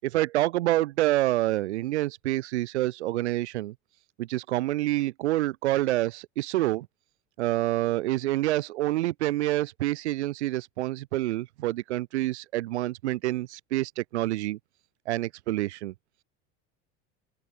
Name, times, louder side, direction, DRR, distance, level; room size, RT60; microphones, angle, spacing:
voice 1, 0.0-3.7 4.2-6.9 7.4-14.6 15.1-15.9, right 16 dB, 90° right, 6.1 m, -27 dB
open air
supercardioid pair, 115°, 33 cm